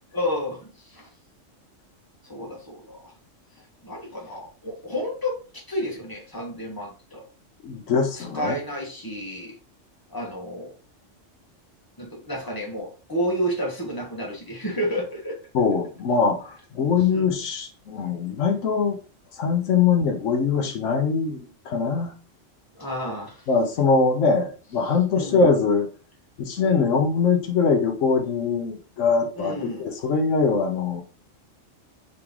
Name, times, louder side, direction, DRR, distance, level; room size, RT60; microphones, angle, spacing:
voice 1, 0.1-1.1 2.2-3.1 3.8-7.2 8.2-9.5 10.1-10.7 12.0-15.4 17.1-17.3 22.7-23.4 25.1-25.4 26.6-26.9 29.4-29.8, equal, 15° left, -1 dB, 1.2 m, -31 dB
voice 2, 7.6-8.5 15.5-19.0 19.4-22.1 23.5-25.9 26.4-31.0, left 5 dB, 80° left, 4 dB, 1.1 m, -22 dB
3.9 x 3.1 x 3.5 m, 0.37 s
omnidirectional pair, 1.3 m